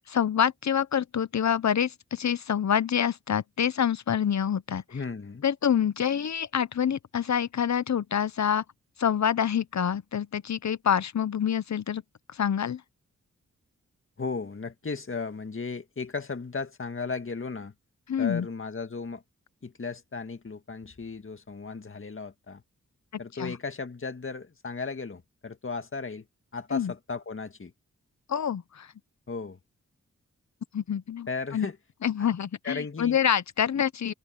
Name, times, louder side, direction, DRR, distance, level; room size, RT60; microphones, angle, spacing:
voice 1, 0.1-4.8 5.4-8.6 9.0-12.0 12.3-12.8 18.1-18.5 23.4-23.6 26.7-26.9 28.3-28.9 30.7-31.3 31.5-31.7 32.0-34.1, left 8 dB, 60° left, 1.0 m, -26 dB
voice 2, 4.9-5.4 14.2-17.7 18.2-19.2 19.6-22.6 23.2-26.3 26.5-27.7 29.3-29.6 31.3-31.8 32.2-32.3 32.6-33.2, left 4 dB, 40° left, 2.1 m, -35 dB
cardioid pair, 50°, 31 cm